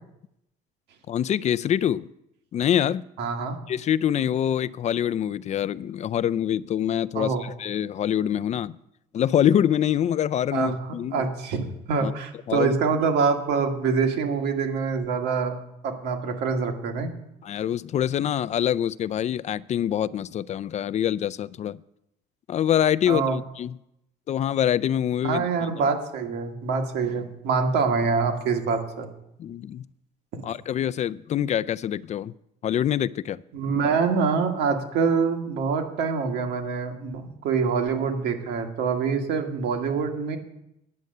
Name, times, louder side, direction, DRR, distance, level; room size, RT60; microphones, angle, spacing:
voice 1, 1.1-2.1 2.5-3.0 3.7-8.8 9.1-11.2 12.0-12.1 12.5-12.8 17.4-21.8 22.5-23.8 24.3-25.8 29.4-29.9 30.4-32.3 32.6-33.4, left 10 dB, 40° left, 17 dB, 0.4 m, -25 dB
voice 2, 3.2-3.6 7.2-7.4 10.5-10.7 11.1-15.6 15.8-17.1 23.1-23.4 25.2-29.1 33.5-40.4, right 5 dB, 80° right, 5 dB, 1.8 m, -25 dB
9.6 x 7.8 x 6.6 m, 0.82 s
cardioid pair, 110°, 17 cm